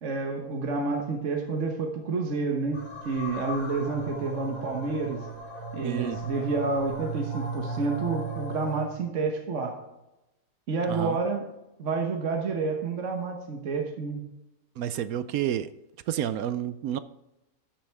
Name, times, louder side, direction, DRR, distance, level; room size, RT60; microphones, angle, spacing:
voice 1, 0.0-5.3 5.7-9.8 10.7-11.4 11.8-14.2, right 4 dB, 50° right, 3 dB, 1.4 m, -29 dB
sound 1, 2.7-8.9, right 3 dB, 55° left, 3.5 m, -36 dB
voice 2, 5.8-6.2 10.9-11.2 14.8-15.7 16.1-17.0, right 10 dB, 70° right, 14 dB, 1.0 m, -29 dB
13.0 x 7.7 x 3.5 m, 0.95 s
omnidirectional pair, 1.7 m